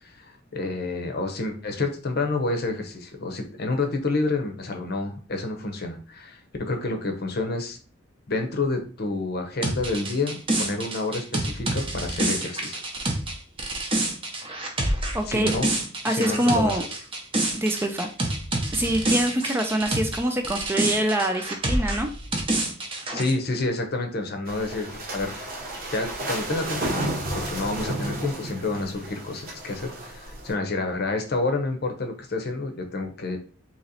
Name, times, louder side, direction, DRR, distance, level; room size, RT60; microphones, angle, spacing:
voice 1, 0.0-7.8 8.3-12.8 15.3-15.7 16.1-16.8 23.1-25.5 25.9-33.4, left 2 dB, 55° left, 5 dB, 0.7 m, -29 dB
sound 1, 9.6-20.2 20.4-23.3, right 2 dB, 25° right, 0.8 m, -27 dB
voice 2, 15.1-15.5 16.0-16.8 17.5-18.1 18.7-22.1, right 1 dB, 10° right, 5 dB, 0.3 m, -24 dB
sound 2, 24.5-30.5, right 1 dB, 50° right, 1.0 m, -32 dB
2.9 x 2.8 x 3.9 m, 0.40 s
head